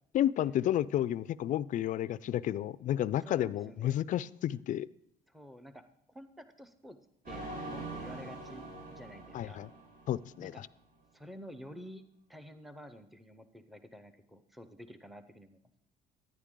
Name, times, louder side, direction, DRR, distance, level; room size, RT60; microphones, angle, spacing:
voice 1, 0.1-4.9 9.3-9.7 10.1-10.5, left 12 dB, 50° left, 18 dB, 0.4 m, -31 dB
voice 2, 3.2-4.0 5.3-7.0 7.3-9.6 10.4-10.7 11.1-12.0 12.3-15.6, equal, ahead, 10 dB, 0.6 m, -50 dB
sound 1, 7.2-10.7, right 2 dB, 60° right, 4.4 m, -44 dB
11.5 x 9.6 x 3.7 m, 0.74 s
cardioid pair, 110°, 17 cm